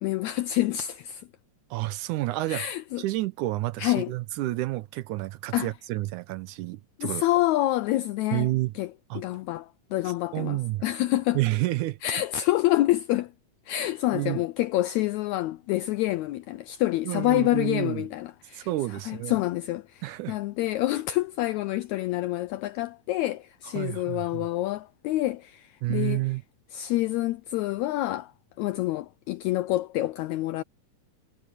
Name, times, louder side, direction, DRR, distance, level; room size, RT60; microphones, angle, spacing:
voice 1, 0.0-1.3 2.5-3.0 3.8-4.1 5.5-5.7 7.0-8.5 8.7-11.4 12.0-13.3 13.7-18.7 19.0-26.3 26.7-28.3 28.6-30.6, left 15 dB, 85° left, 1.6 m, -27 dB
voice 2, 1.7-2.7 3.0-7.2 8.3-8.7 9.1-9.2 10.3-10.9 11.3-12.0 14.1-14.4 17.1-18.1 18.6-19.4 20.0-20.4 23.7-24.5 25.8-26.4, right 18 dB, 80° right, 2.0 m, -29 dB
omnidirectional pair, 3.8 m